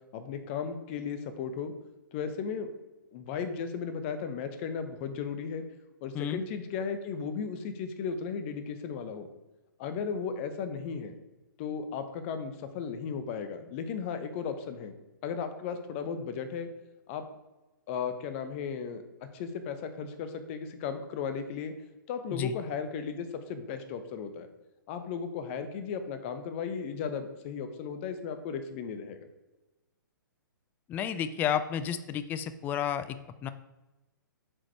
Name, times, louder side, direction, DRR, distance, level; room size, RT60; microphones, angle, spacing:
voice 1, 0.1-1.7 2.1-2.7 3.1-5.6 6.0-9.3 9.8-11.1 11.6-14.9 15.2-16.7 17.1-17.2 17.9-21.7 22.1-24.5 24.9-29.2, left 6 dB, 35° left, 9 dB, 0.9 m, -35 dB
voice 2, 30.9-33.5, left 9 dB, 15° left, 13 dB, 0.3 m, -31 dB
7.4 x 4.9 x 4.6 m, 1.1 s
figure-of-eight pair, 120°, 11 cm